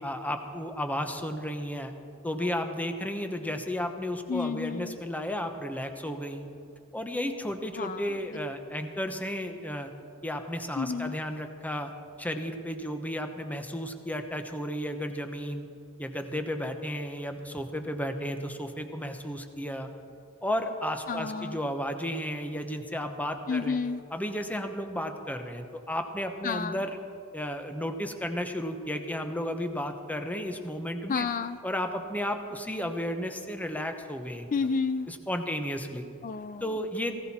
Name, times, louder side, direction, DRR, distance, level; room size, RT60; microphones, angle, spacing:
voice 1, 0.0-1.9 2.2-6.4 6.9-9.9 10.2-11.9 12.2-15.6 16.0-19.9 20.4-23.8 24.1-27.0 27.3-31.3 31.6-34.5 35.1-36.0 36.6-37.2, equal, 5° left, 6 dB, 1.0 m, -33 dB
voice 2, 4.3-5.0 7.8-8.2 10.8-11.2 21.1-21.6 23.5-24.0 26.4-26.8 31.1-31.6 34.5-35.1 36.2-36.7, left 5 dB, 35° left, 12 dB, 0.4 m, -30 dB
19.0 x 16.5 x 4.3 m, 2.4 s
head